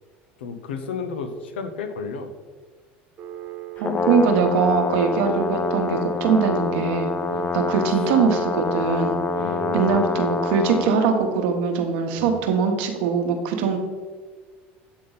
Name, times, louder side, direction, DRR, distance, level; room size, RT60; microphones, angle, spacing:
voice 1, 0.4-2.3 4.7-4.9 7.3-7.5 8.0-8.1 9.4-10.1 12.2-12.4, left 5 dB, 85° left, 8 dB, 0.7 m, -32 dB
Telephone, 3.2-9.9, right 15 dB, 40° right, 0.5 m, -36 dB
Brass instrument, 3.8-10.9, left 4 dB, 25° left, 0.4 m, -26 dB
voice 2, 3.8-7.1 7.5-9.2 9.7-13.8, right 5 dB, 75° right, 4 dB, 1.0 m, -22 dB
8.2 x 3.8 x 4.0 m, 1.5 s
hypercardioid pair, 85°, 6 cm